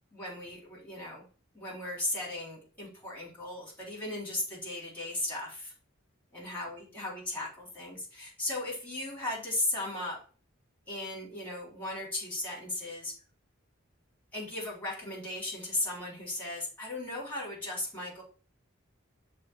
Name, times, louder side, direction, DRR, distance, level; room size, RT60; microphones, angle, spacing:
voice 1, 0.1-1.2 1.5-5.7 6.3-10.2 10.9-13.2 14.3-18.2, left 2 dB, 10° left, -5 dB, 3.6 m, -36 dB
6.7 x 3.5 x 6.2 m, 0.39 s
head